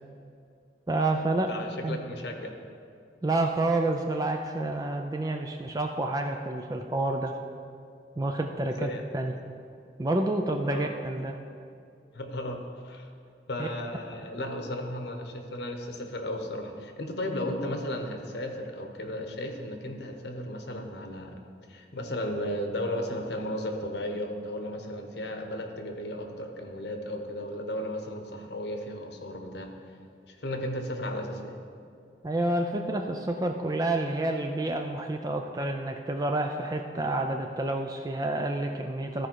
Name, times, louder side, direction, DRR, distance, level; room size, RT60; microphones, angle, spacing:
voice 1, 0.9-1.5 1.8-2.0 3.2-7.3 8.2-9.3 10.0-11.4 13.6-13.7 32.2-39.3, right 2 dB, 20° right, 3 dB, 0.3 m, -29 dB
voice 2, 1.5-2.5 8.7-9.3 10.6-10.9 12.1-13.1 13.5-21.4 21.7-29.7 30.3-31.6, left 1 dB, 65° left, 4 dB, 0.9 m, -35 dB
13.5 x 4.9 x 4.5 m, 2.4 s
head